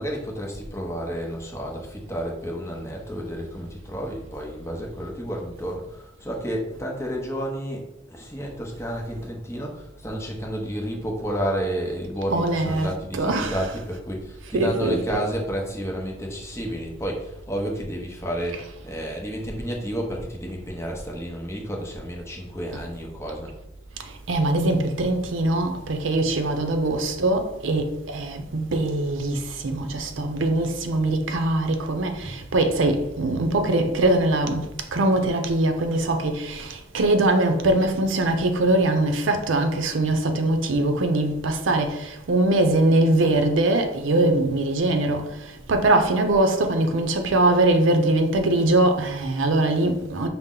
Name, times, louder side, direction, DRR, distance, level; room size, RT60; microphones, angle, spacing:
voice 1, 0.0-23.5, equal, 15° left, 0.7 m, -31 dB
voice 2, 12.3-13.7 14.5-15.2 24.3-29.4 29.6-34.7 34.9-45.2 45.7-50.3, right 2 dB, 80° right, 0.5 m, -22 dB
5.5 x 2.0 x 3.7 m
head